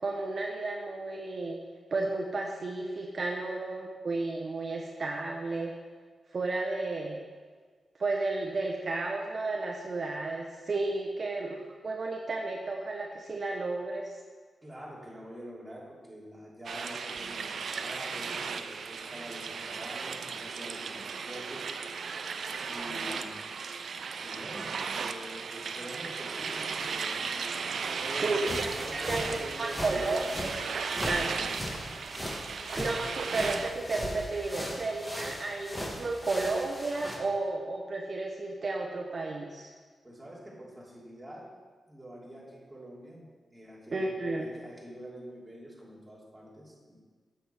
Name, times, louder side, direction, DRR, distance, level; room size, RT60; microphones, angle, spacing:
voice 1, 0.0-1.6 1.9-5.7 6.3-7.2 8.0-14.1 28.2-30.5 31.1-31.3 32.8-39.7 43.9-44.5, right 3 dB, 50° right, 0 dB, 0.9 m, -32 dB
voice 2, 14.6-21.7 22.7-23.5 24.2-27.2 28.0-28.4 28.7-30.4 31.1-31.5 40.0-41.5 41.9-47.0, right 1 dB, 10° right, -5 dB, 2.9 m, -45 dB
sound 1, 16.6-33.7, right 5 dB, 70° right, 0.5 m, -36 dB
sound 2, 28.4-37.2, equal, 10° left, 1.6 m, -38 dB
8.8 x 7.2 x 4.6 m, 1.5 s
cardioid pair, 65°, 0 cm